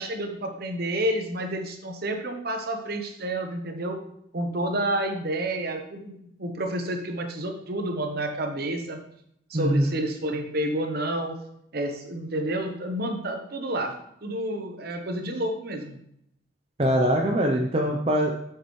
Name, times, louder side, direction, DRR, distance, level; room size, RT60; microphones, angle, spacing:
voice 1, 0.0-4.0 4.3-9.0 9.5-11.3 11.7-13.9 14.2-16.0, right 1 dB, 50° right, 5 dB, 1.0 m, -29 dB
voice 2, 9.5-9.9 16.8-18.3, equal, 30° right, 0 dB, 0.6 m, -22 dB
7.6 x 6.8 x 3.2 m, 0.74 s
head